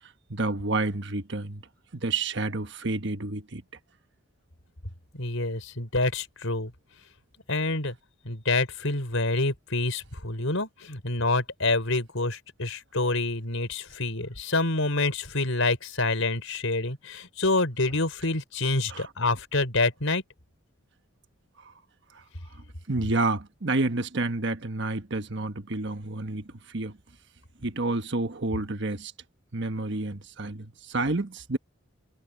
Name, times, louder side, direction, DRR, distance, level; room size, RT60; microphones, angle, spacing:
voice 1, 0.3-1.6 1.9-3.6 18.9-19.1 22.9-27.0 27.6-29.1 29.5-31.6, right 2 dB, 55° right, 1.3 m, -29 dB
voice 2, 5.1-6.7 7.5-7.9 8.2-20.2, left 2 dB, 70° left, 4.7 m, -27 dB
head